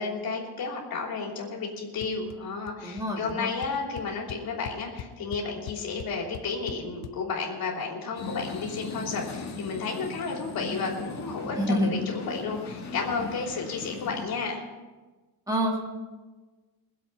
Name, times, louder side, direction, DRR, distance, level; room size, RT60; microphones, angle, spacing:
voice 1, 0.0-14.6, left 4 dB, 65° left, -1 dB, 3.3 m, -32 dB
sound 1, 2.0-2.4 2.6-3.0 3.3-3.4 3.6-7.1, left 10 dB, 90° left, 0.9 m, -41 dB
voice 2, 2.8-3.5 11.6-11.9 15.5-15.8, equal, 10° right, 0 dB, 2.0 m, -27 dB
sound 2, 8.2-14.2, left 3 dB, 45° left, 1.9 m, -38 dB
21.5 x 7.9 x 5.7 m, 1.3 s
cardioid pair, 165°, 38 cm